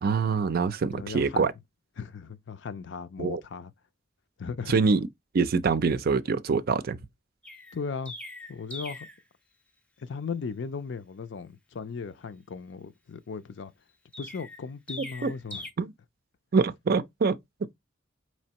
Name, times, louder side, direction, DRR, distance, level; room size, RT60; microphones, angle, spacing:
voice 1, 0.0-1.5 3.2-3.4 4.7-5.1 5.3-7.0 15.2-15.3 15.8-15.9 16.5-17.4, right 5 dB, 50° right, 0.4 m, -25 dB
voice 2, 0.9-1.5 2.0-3.7 4.4-4.7 7.7-8.2 8.5-9.1 10.0-13.7 14.2-15.7, left 5 dB, 70° left, 0.5 m, -37 dB
Chirp tweet, 7.4-9.2 14.1-15.7, left 2 dB, 5° left, 0.6 m, -41 dB
4.4 x 3.1 x 2.8 m
head